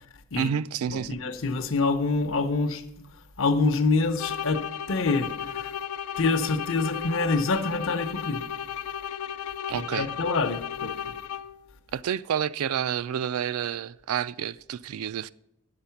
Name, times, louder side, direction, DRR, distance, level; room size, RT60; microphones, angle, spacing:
voice 1, 0.3-1.2 9.7-10.1 11.9-15.3, right 8 dB, 80° right, 0.3 m, -29 dB
voice 2, 0.9-2.8 3.4-5.7 6.2-8.4 9.7-11.1, left 3 dB, 65° left, 0.7 m, -26 dB
sound 1, 4.2-11.7, left 9 dB, 85° left, 0.4 m, -34 dB
9.6 x 6.7 x 5.7 m
head